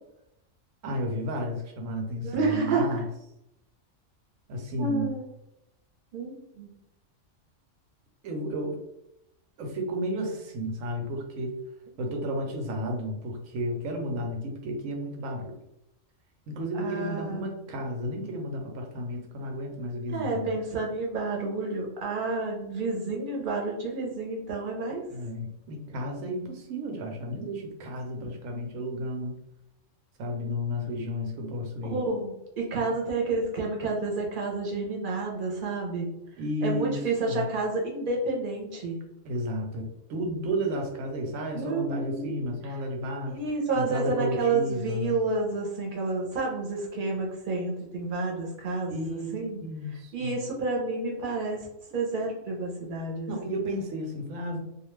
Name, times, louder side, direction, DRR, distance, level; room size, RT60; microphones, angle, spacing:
voice 1, 0.8-3.0 4.5-5.1 8.2-8.8 9.6-11.6 12.0-15.6 16.5-20.5 25.1-29.4 30.2-32.0 36.4-37.0 37.3-37.5 39.2-43.4 43.7-45.2 48.9-50.4 53.3-54.6, equal, 85° right, 2 dB, 1.1 m, -32 dB
voice 2, 2.2-3.0 4.8-5.2 6.1-6.7 16.8-17.5 20.1-25.0 31.8-36.1 36.6-39.0 41.5-42.4 42.6-42.7 43.3-49.6 50.1-51.6 51.9-53.3, right 3 dB, 45° right, -1 dB, 0.8 m, -30 dB
2.4 x 2.3 x 3.1 m, 0.83 s
omnidirectional pair, 1.3 m